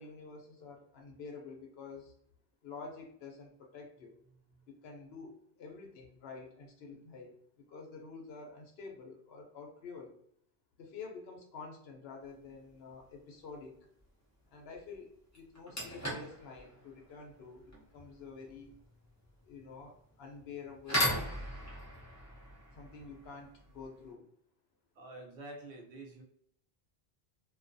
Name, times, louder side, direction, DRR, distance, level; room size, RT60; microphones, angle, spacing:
voice 1, 0.0-2.1 2.6-4.1 4.7-7.4 7.7-10.1 10.8-13.8 14.5-18.8 19.4-21.4 22.7-24.3, left 4 dB, 70° left, 2 dB, 0.8 m, -48 dB
sound 1, 12.4-12.7 14.7-14.8 15.3-24.1, equal, 20° left, 0.7 m, -39 dB
voice 2, 24.9-26.2, right 2 dB, 80° right, 0 dB, 1.0 m, -47 dB
2.3 x 2.2 x 2.5 m, 0.67 s
omnidirectional pair, 1.1 m